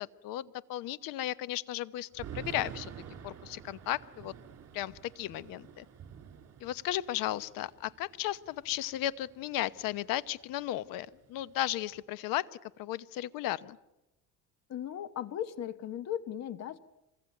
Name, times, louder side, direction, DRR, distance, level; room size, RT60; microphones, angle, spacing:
voice 1, 0.0-2.9 3.2-4.3 4.7-5.8 6.6-13.8, left 14 dB, 65° left, 17 dB, 1.1 m, -35 dB
Thunder / Rain, 2.1-10.0 10.3-10.4 10.7-12.0, right 8 dB, 45° right, 4.2 m, -49 dB
voice 2, 14.7-16.8, left 10 dB, 45° left, 13 dB, 1.4 m, -37 dB
26.0 x 21.0 x 9.2 m, 0.99 s
cardioid pair, 115°, 36 cm